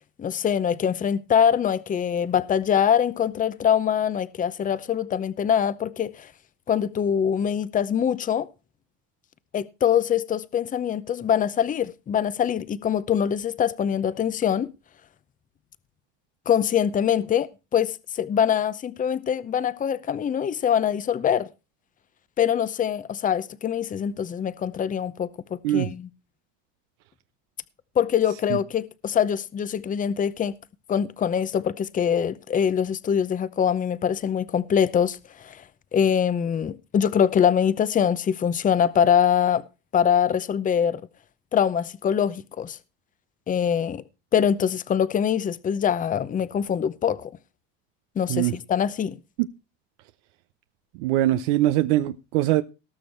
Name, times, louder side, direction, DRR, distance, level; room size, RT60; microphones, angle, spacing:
voice 1, 0.2-6.3 6.7-8.5 9.5-14.7 16.5-21.5 22.4-25.3 25.7-26.1 28.0-30.5 30.9-35.6 35.9-39.6 39.9-41.0 41.5-42.8 43.5-44.0 44.3-47.3 48.2-49.2, left 8 dB, 20° left, 0.7 m, -23 dB
voice 2, 51.0-52.6, right 14 dB, 80° right, 0.8 m, -22 dB
18.5 x 6.4 x 4.4 m
supercardioid pair, 115°, 36 cm